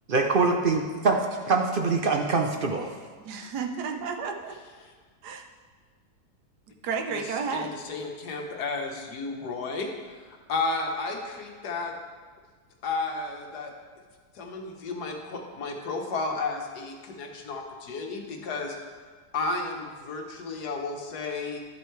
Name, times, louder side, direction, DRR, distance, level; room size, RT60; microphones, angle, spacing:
voice 1, 0.1-1.2 1.5-2.8, right 4 dB, 55° right, 2 dB, 0.6 m, -23 dB
voice 2, 3.3-4.5 5.2-5.5 6.8-7.8, right 5 dB, 85° right, 4 dB, 1.4 m, -32 dB
voice 3, 7.5-9.9 10.3-11.9 12.8-13.7 14.4-18.8 19.3-21.6, left 3 dB, 80° left, 2 dB, 1.6 m, -32 dB
12.0 x 7.9 x 3.2 m, 1.5 s
omnidirectional pair, 1.7 m